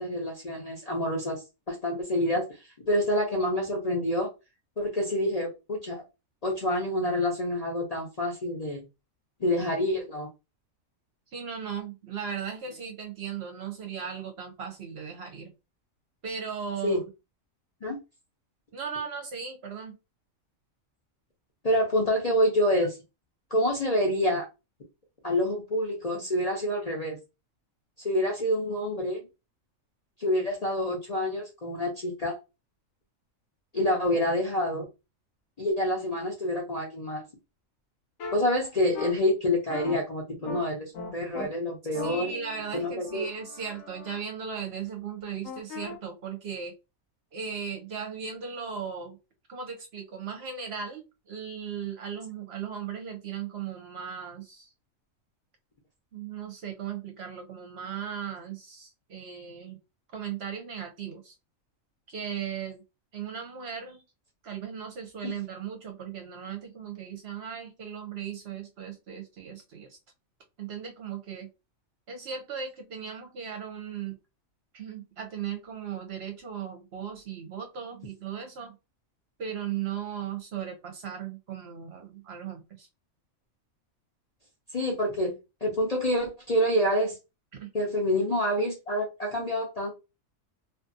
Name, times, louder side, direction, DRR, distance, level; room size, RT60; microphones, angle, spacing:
voice 1, 0.0-2.5 2.9-4.3 4.8-6.0 6.4-8.8 9.4-10.3 16.8-17.0 17.8-18.0 21.6-23.0 23.5-24.5 25.2-27.2 28.0-29.2 30.2-32.4 33.7-34.9 35.6-37.2 38.3-42.3 42.7-43.3 65.2-65.3 84.7-85.4 85.6-87.2 87.7-89.9, left 1 dB, 40° left, -3 dB, 0.6 m, -27 dB
voice 2, 11.3-15.5 16.2-17.0 18.7-20.0 41.9-46.7 47.3-49.2 49.5-54.7 56.1-59.8 60.1-61.3 62.1-62.8 63.1-64.0 64.4-70.0 70.6-71.5 72.1-74.2 74.7-78.8 79.4-82.9 87.5-87.7, right 7 dB, 60° right, 4 dB, 0.8 m, -37 dB
sound 1, 38.2-38.4 38.9-39.1 39.7-40.0 40.4-40.6 40.9-41.5 41.9-44.2 45.4-46.0, left 4 dB, 75° left, 1.1 m, -39 dB
2.5 x 2.5 x 2.5 m, 0.26 s
omnidirectional pair, 1.4 m